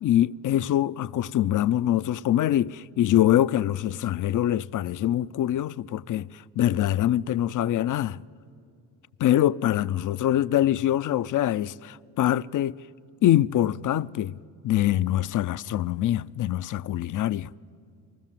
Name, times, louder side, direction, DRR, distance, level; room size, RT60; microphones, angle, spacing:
voice 1, 0.0-8.2 9.2-12.8 13.2-14.4 14.6-17.5, left 12 dB, 45° left, 0.5 m, -24 dB
24.0 x 20.0 x 7.6 m
supercardioid pair, 65°, 45 cm